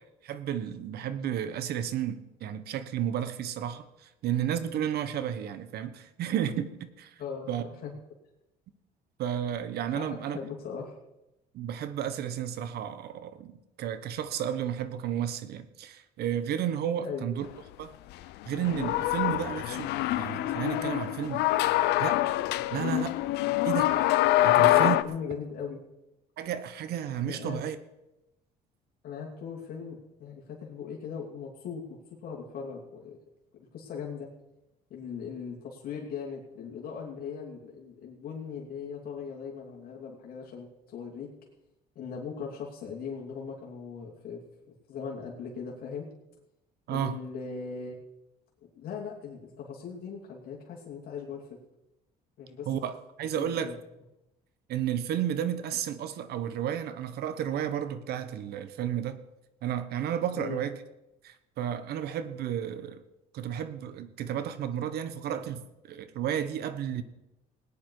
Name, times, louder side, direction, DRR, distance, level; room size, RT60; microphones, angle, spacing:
voice 1, 0.2-3.8 4.2-7.1 7.5-7.7 9.2-10.4 11.5-17.5 17.8-17.9 18.5-19.9 20.2-21.5 22.0-22.2 22.7-23.1 23.6-23.9 24.4-25.0 26.4-27.8 46.9-47.2 52.7-53.7 54.7-59.2 59.6-60.8 61.2-63.0 63.3-65.6 65.9-67.0, right 9 dB, 70° right, 12 dB, 1.1 m, -32 dB
voice 2, 7.2-7.9 9.9-10.9 17.0-17.3 24.6-25.8 27.2-27.6 29.0-33.2 33.5-34.3 34.9-41.3 41.9-44.4 44.9-46.1 46.9-47.9 48.8-51.6 52.4-52.7 53.4-53.7 60.3-60.6, left 6 dB, 65° left, -2 dB, 2.8 m, -39 dB
sound 1, 18.5-25.0, left 16 dB, 85° left, 0.6 m, -25 dB
18.5 x 10.0 x 4.8 m, 0.93 s
cardioid pair, 110°, 17 cm